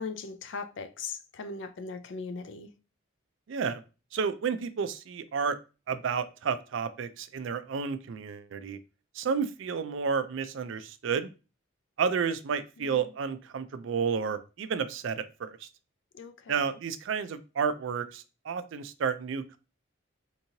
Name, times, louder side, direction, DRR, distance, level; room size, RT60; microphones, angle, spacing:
voice 1, 0.0-2.7 12.8-13.1 16.1-16.8, left 4 dB, 65° left, 0.4 m, -39 dB
voice 2, 3.5-3.8 4.1-5.6 5.9-8.8 9.1-11.3 12.0-15.7 16.5-19.6, right 6 dB, 70° right, 0.4 m, -31 dB
3.6 x 3.0 x 2.7 m
head